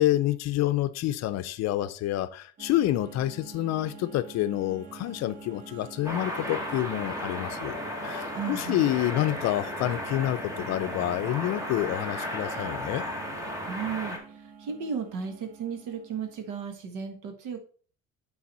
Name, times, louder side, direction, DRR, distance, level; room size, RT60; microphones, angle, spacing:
voice 1, 0.0-7.8 8.0-13.0, left 14 dB, 60° left, 12 dB, 0.6 m, -28 dB
sound 1, 2.6-16.8, right 5 dB, 30° right, 0.6 m, -47 dB
sound 2, 4.8-13.7, right 1 dB, 50° right, 2.4 m, -56 dB
sound 3, 6.0-14.2, equal, 10° right, 1.4 m, -35 dB
voice 2, 8.4-8.9 13.6-17.6, right 6 dB, 80° right, 6 dB, 1.5 m, -35 dB
8.7 x 4.0 x 4.1 m, 0.43 s
cardioid pair, 145°, 30 cm